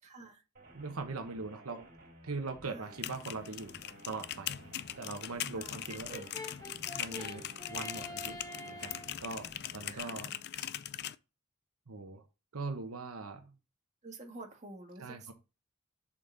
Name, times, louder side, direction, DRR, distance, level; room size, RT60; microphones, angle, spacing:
voice 1, 0.0-0.4 2.6-2.9 5.5-5.8 9.9-10.3 14.0-15.3, right 2 dB, 35° right, 1.7 m, -49 dB
sound 1, 0.5-10.0, right 1 dB, 50° right, 3.5 m, -55 dB
voice 2, 0.7-1.9 2.2-6.3 7.0-7.4 7.7-8.4 8.7-10.3 11.9-12.2 12.5-13.5 15.0-15.3, right 3 dB, 85° right, 1.0 m, -41 dB
sound 2, 2.8-11.2, left 11 dB, 50° left, 0.4 m, -41 dB
Brass instrument, 5.9-9.2, left 1 dB, 15° left, 1.0 m, -46 dB
7.1 x 5.2 x 2.6 m
head